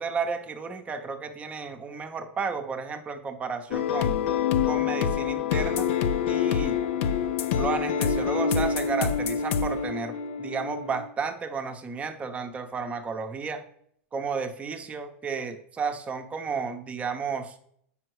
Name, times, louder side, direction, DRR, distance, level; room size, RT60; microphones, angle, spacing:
voice 1, 0.0-4.1 4.7-5.9 6.3-6.8 7.5-13.6 14.1-17.5, right 5 dB, 20° right, 7 dB, 0.8 m, -32 dB
sound 1, 3.7-11.0, left 7 dB, 70° left, 0.7 m, -26 dB
7.5 x 5.6 x 4.7 m, 0.67 s
supercardioid pair, 135°, 7 cm